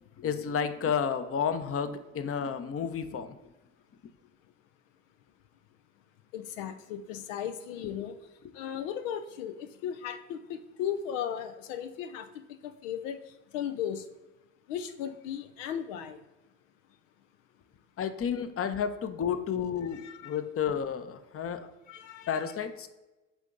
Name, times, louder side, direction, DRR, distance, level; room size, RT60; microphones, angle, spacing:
voice 1, 0.2-3.3 18.0-21.7 22.3-22.9, left 7 dB, 40° left, 11 dB, 0.7 m, -31 dB
voice 2, 6.3-8.2 8.5-12.3 12.6-13.2 13.5-14.0 14.7-16.2 19.9-20.4 21.9-22.5, left 9 dB, 85° left, 9 dB, 0.5 m, -36 dB
7.0 x 3.8 x 3.8 m, 1.1 s
hypercardioid pair, 55°, 37 cm